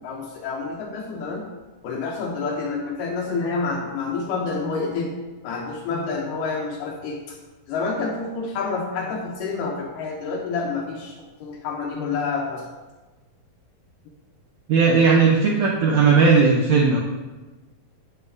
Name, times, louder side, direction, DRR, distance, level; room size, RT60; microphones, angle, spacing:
voice 1, 0.0-1.4 1.8-5.2 5.4-7.4 7.7-11.2 11.4-12.7, left 4 dB, 75° left, 0 dB, 2.2 m, -28 dB
voice 2, 14.7-17.0, right 5 dB, 75° right, -2 dB, 1.7 m, -17 dB
9.2 x 7.7 x 2.6 m, 1.2 s
omnidirectional pair, 4.1 m